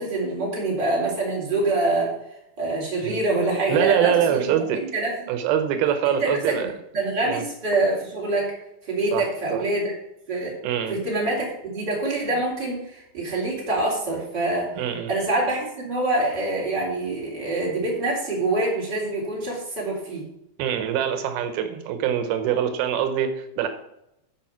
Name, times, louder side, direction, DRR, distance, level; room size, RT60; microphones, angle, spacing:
voice 1, 0.0-2.1 2.6-4.6 4.9-5.1 6.2-6.6 6.9-8.5 8.8-9.9 10.3-10.5 10.9-14.7 15.1-20.2, right 2 dB, 30° right, -4 dB, 4.4 m, -25 dB
voice 2, 3.7-4.9 5.3-6.7 7.2-7.4 9.1-9.6 10.6-11.0 14.8-15.1 20.6-23.7, right 9 dB, 90° right, 8 dB, 2.8 m, -24 dB
13.5 x 5.0 x 5.9 m, 0.85 s
omnidirectional pair, 4.3 m